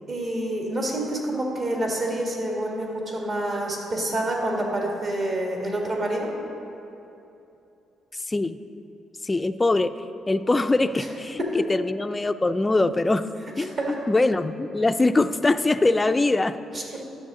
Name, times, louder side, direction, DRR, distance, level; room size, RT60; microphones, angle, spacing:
voice 1, 0.1-6.3 11.0-11.1 11.4-11.6 13.8-14.0 16.7-16.8, right 1 dB, 50° right, -1 dB, 1.8 m, -27 dB
voice 2, 9.2-9.9 10.3-13.3 13.6-16.6, left 2 dB, 20° left, 10 dB, 0.3 m, -22 dB
12.0 x 7.0 x 3.7 m, 2.8 s
cardioid pair, 90°, 0 cm